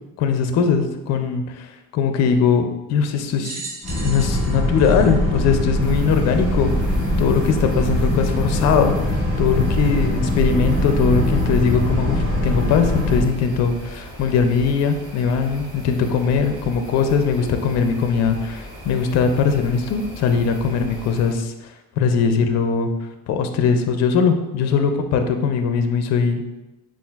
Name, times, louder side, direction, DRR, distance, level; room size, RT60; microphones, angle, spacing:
voice 1, 0.2-3.6 4.0-6.7 7.2-9.0 9.4-21.5 22.0-22.9 23.3-26.4, left 6 dB, 45° left, 7 dB, 0.4 m, -20 dB
sound 1, 3.4-6.1 6.8-6.9 8.0-8.1, right 3 dB, 40° right, 0.8 m, -37 dB
Boat Water vehicle, 3.8-13.2, left 1 dB, 5° left, 1.5 m, -22 dB
sound 2, 5.8-21.3, equal, 15° right, 1.0 m, -37 dB
7.0 x 2.5 x 2.3 m, 1.0 s
cardioid pair, 155°, 38 cm